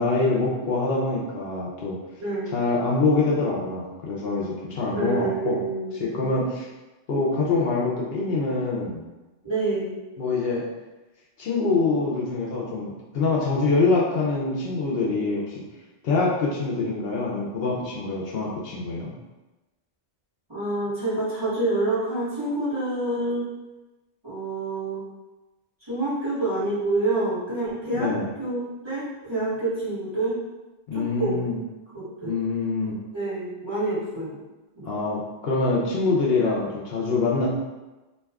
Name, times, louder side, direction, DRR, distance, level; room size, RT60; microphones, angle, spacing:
voice 1, 0.0-2.0 2.5-5.6 5.9-6.7 7.1-9.0 10.2-10.6 11.4-15.6 16.0-19.1 28.0-28.3 30.9-31.6 32.2-33.0 34.8-37.5, left 3 dB, 70° left, -4 dB, 0.8 m, -25 dB
voice 2, 2.2-2.6 4.9-6.3 9.4-9.9 20.5-23.5 24.2-25.0 25.8-28.1 28.4-30.3 30.9-31.5 31.9-32.3 33.1-34.4 34.7-34.9, right 2 dB, 25° right, -12 dB, 1.3 m, -27 dB
2.5 x 2.3 x 3.4 m, 1.1 s
omnidirectional pair, 1.1 m